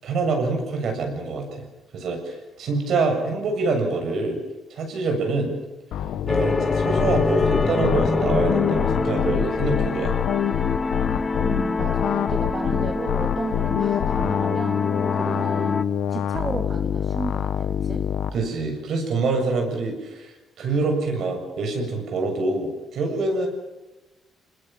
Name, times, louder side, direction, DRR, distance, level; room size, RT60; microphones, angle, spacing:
voice 1, 0.0-1.7 1.9-4.4 4.7-5.5 6.3-10.1 18.3-23.5, right 3 dB, 70° right, 4 dB, 7.3 m, -25 dB
sound 1, 5.9-18.3, left 9 dB, 80° left, 1.3 m, -26 dB
sound 2, 6.3-15.8, left 3 dB, 30° left, 1.0 m, -26 dB
voice 2, 11.4-14.8 15.1-15.8 16.1-18.1, right 4 dB, 35° right, 4 dB, 2.1 m, -33 dB
26.5 x 20.5 x 7.6 m, 1.1 s
cardioid pair, 90°, 0 cm